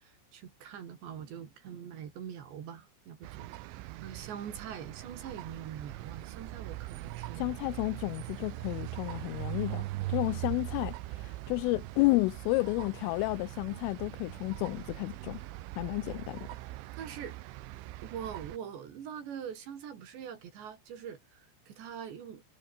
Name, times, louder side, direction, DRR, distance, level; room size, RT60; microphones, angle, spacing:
voice 1, 0.0-3.5 4.0-7.5 17.0-17.4 18.0-22.4, right 8 dB, 60° right, 5.0 m, -43 dB
sound 1, 3.2-18.6, right 18 dB, 75° right, 3.3 m, -41 dB
voice 2, 7.4-15.4 15.8-16.5, left 24 dB, 85° left, 3.1 m, -31 dB
omnidirectional pair, 5.9 m